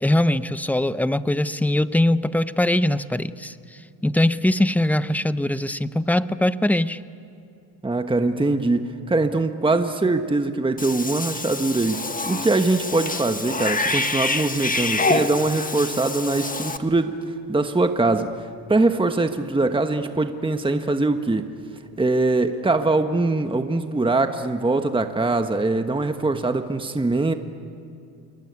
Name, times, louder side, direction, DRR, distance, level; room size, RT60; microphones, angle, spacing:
voice 1, 0.0-3.5 4.0-7.0, left 1 dB, 5° left, 13 dB, 0.8 m, -21 dB
voice 2, 7.8-12.0 12.3-17.2 17.5-18.3 18.7-21.5 22.0-27.3, right 2 dB, 15° right, 7 dB, 1.3 m, -22 dB
Cat / Bathtub (filling or washing), 10.8-16.8, left 3 dB, 20° left, 1.6 m, -26 dB
27.0 x 23.0 x 9.6 m, 2.6 s
cardioid pair, 90°, 39 cm